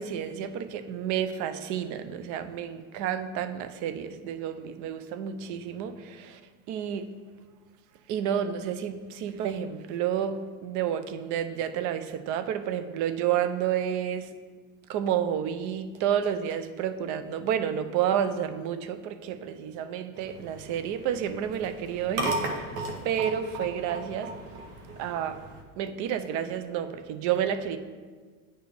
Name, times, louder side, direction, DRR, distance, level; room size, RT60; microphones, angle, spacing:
voice 1, 0.0-6.4 6.7-7.1 8.1-14.3 14.9-22.7 23.0-24.3 25.0-25.4 25.8-27.8, right 9 dB, 50° right, 11 dB, 0.5 m, -30 dB
sound 1, 20.1-25.6, right 2 dB, 75° right, 1.3 m, -36 dB
9.2 x 4.4 x 3.3 m, 1.5 s
supercardioid pair, 130°, 39 cm